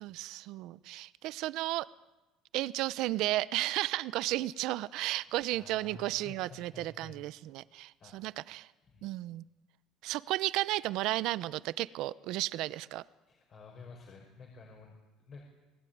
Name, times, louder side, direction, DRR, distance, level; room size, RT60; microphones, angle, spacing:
voice 1, 0.0-1.9 2.5-8.7 9.0-9.4 10.0-13.0, right 16 dB, 65° right, 17 dB, 0.8 m, -33 dB
voice 2, 5.2-7.2 8.0-8.4 8.8-9.1 13.3-15.4, left 4 dB, 40° left, 1 dB, 5.2 m, -52 dB
29.0 x 19.5 x 9.5 m, 1.1 s
cardioid pair, 135°, 0 cm